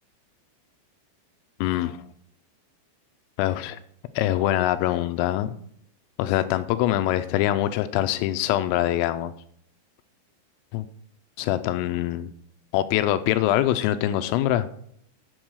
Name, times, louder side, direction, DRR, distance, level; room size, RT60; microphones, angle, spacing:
voice 1, 1.6-2.0 3.4-3.8 4.2-5.5 6.2-9.3 10.7-10.8 11.4-12.3 12.7-14.7, left 13 dB, 85° left, 11 dB, 3.1 m, -24 dB
8.8 x 7.9 x 6.2 m, 0.67 s
omnidirectional pair, 5.9 m